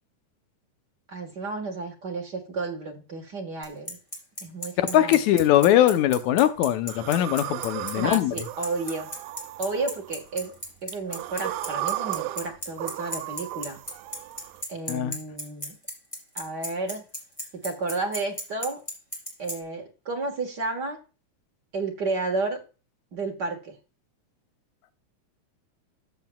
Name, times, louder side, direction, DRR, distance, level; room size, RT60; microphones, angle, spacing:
voice 1, 1.1-4.0 4.4-5.2 7.9-9.1 9.6-10.5 10.8-13.8 14.7-15.7 16.3-17.0 17.6-18.8 19.4-21.0 21.7-22.6 23.1-23.7, right 3 dB, 45° right, 2 dB, 1.5 m, -32 dB
Bicycle, 3.6-19.5, equal, 10° left, 3.3 m, -33 dB
voice 2, 4.8-8.4 14.9-15.2, left 12 dB, 75° left, 9 dB, 2.0 m, -21 dB
sound 1, 6.9-10.5 10.9-14.6, right 15 dB, 80° right, 1.6 m, -35 dB
13.5 x 7.6 x 2.3 m, 0.33 s
omnidirectional pair, 3.6 m